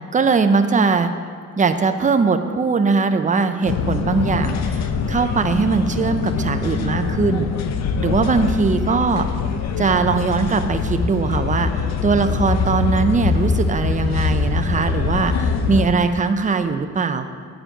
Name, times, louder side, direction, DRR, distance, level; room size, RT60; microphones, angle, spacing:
voice 1, 0.1-1.1 1.6-7.5 8.0-9.3 9.8-11.7 12.0-17.3, right 4 dB, 25° right, 8 dB, 0.6 m, -20 dB
sound 1, 3.7-15.9, left 5 dB, 60° left, 0.7 m, -23 dB
8.9 x 4.9 x 6.6 m, 2.1 s
cardioid pair, 90°, 30 cm